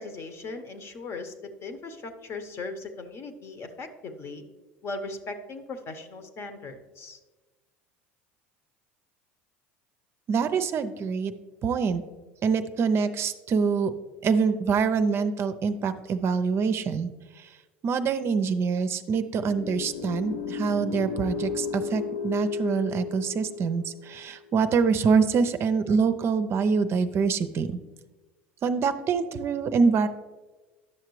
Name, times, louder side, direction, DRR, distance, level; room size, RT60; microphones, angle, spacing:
voice 1, 0.0-4.4 4.8-7.2, left 3 dB, 45° left, 8 dB, 1.0 m, -38 dB
voice 2, 10.3-11.3 11.6-12.0 12.4-13.9 14.2-17.1 17.4-17.5 17.8-27.8 28.6-30.1, right 5 dB, 45° right, 10 dB, 0.5 m, -25 dB
sound 1, 19.4-24.5, left 6 dB, 75° left, 0.6 m, -34 dB
11.0 x 6.5 x 3.1 m, 1.3 s
hypercardioid pair, 80°, 6 cm